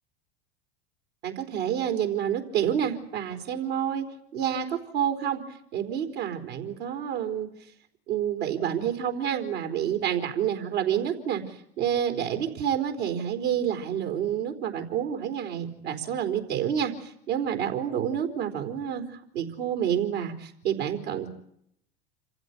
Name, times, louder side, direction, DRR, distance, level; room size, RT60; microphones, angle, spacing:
voice 1, 1.2-4.1 4.3-5.4 5.7-7.5 8.1-21.3, right 9 dB, 70° right, 6 dB, 4.3 m, -28 dB
27.5 x 15.5 x 9.9 m, 0.73 s
hypercardioid pair, 85°, 32 cm